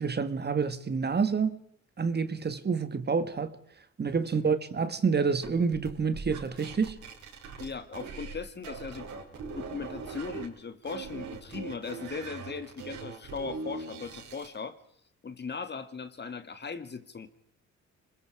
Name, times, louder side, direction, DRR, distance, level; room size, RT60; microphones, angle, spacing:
voice 1, 0.0-1.6 2.0-3.5 4.0-7.0, right 5 dB, 35° right, 1.7 m, -28 dB
sound 1, 5.4-8.4 8.6-10.5 10.8-14.5, right 4 dB, 75° right, 5.0 m, -41 dB
voice 2, 7.6-9.1 9.6-14.8 15.2-17.3, left 5 dB, 35° left, 1.9 m, -38 dB
27.0 x 21.0 x 4.8 m
cardioid pair, 90°, 30 cm